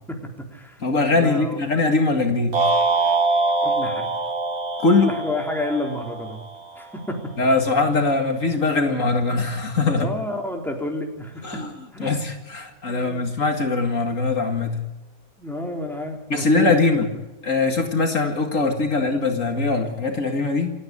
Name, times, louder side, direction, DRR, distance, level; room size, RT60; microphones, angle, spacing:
voice 1, 0.1-0.8 1.1-1.6 3.6-4.1 4.9-6.4 6.7-7.3 9.9-11.6 11.9-12.2 12.9-13.2 15.4-16.8, left 1 dB, ahead, 1 dB, 3.7 m, -30 dB
voice 2, 0.8-2.6 4.8-5.1 7.4-10.1 11.4-11.7 12.0-14.8 16.3-17.1 17.4-20.7, left 3 dB, 65° left, 4 dB, 2.5 m, -21 dB
sound 1, 2.5-6.8, right 3 dB, 75° right, 2.7 m, -23 dB
28.5 x 10.0 x 9.8 m, 1.0 s
omnidirectional pair, 1.5 m